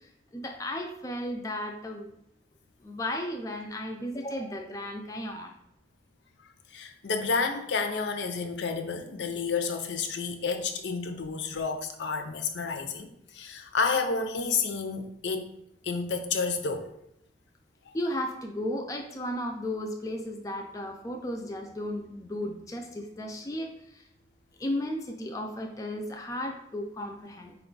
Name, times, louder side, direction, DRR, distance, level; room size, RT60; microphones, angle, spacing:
voice 1, 0.3-2.1 2.8-5.5 17.9-23.7 24.6-27.6, left 1 dB, 20° left, 3 dB, 0.3 m, -34 dB
voice 2, 6.7-15.5 15.8-16.9, left 4 dB, 75° left, 6 dB, 0.5 m, -30 dB
4.6 x 2.3 x 3.7 m, 0.78 s
head